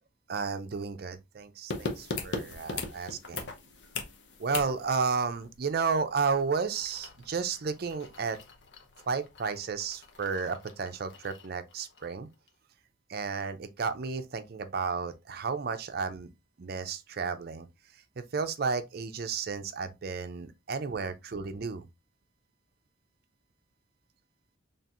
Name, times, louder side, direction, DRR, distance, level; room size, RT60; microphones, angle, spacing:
voice 1, 0.3-3.5 4.4-8.4 9.1-12.3 13.1-16.3 16.6-17.7 18.2-21.9, right 5 dB, 50° right, 0.5 m, -32 dB
sound 1, 1.7-12.2 12.5-12.6, left 4 dB, 65° left, 0.8 m, -41 dB
4.4 x 3.3 x 2.4 m
head